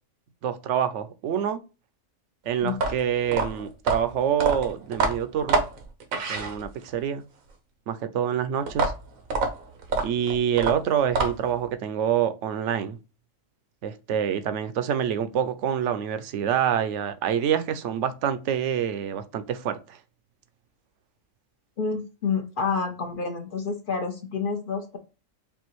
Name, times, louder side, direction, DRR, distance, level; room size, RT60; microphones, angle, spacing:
voice 1, 0.4-1.6 2.4-5.6 6.3-7.2 7.9-8.9 10.0-13.0 13.8-20.0, right 9 dB, 70° right, 0.8 m, -26 dB
sound 1, 2.7-7.0 8.7-11.6, right 3 dB, 90° right, 1.3 m, -27 dB
voice 2, 21.8-25.0, left 5 dB, 50° left, 0.7 m, -28 dB
5.3 x 2.5 x 3.0 m
omnidirectional pair, 1.4 m